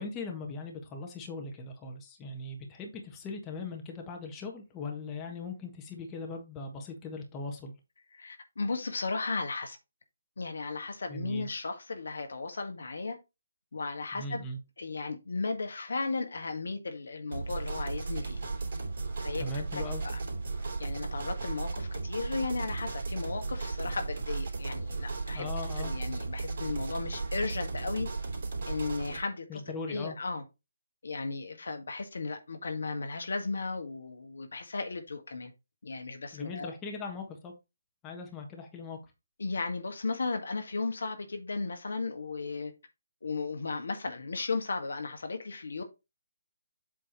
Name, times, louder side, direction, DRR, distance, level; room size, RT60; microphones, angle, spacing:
voice 1, 0.0-7.7 11.1-11.5 14.1-14.6 19.4-20.0 25.3-25.9 29.5-30.1 36.3-37.5 38.0-39.0, left 3 dB, 15° left, 1.4 m, -39 dB
voice 2, 8.1-9.8 10.4-13.2 13.7-14.5 14.8-18.4 19.2-19.4 19.8-20.2 20.8-25.5 25.8-28.1 28.7-29.6 29.9-30.4 31.0-35.5 35.8-36.7 39.4-42.7 43.2-45.8, left 3 dB, 70° left, 1.6 m, -35 dB
sound 1, 17.3-29.2, right 3 dB, 50° right, 2.6 m, -35 dB
7.8 x 3.4 x 4.5 m
figure-of-eight pair, 150°, 0 cm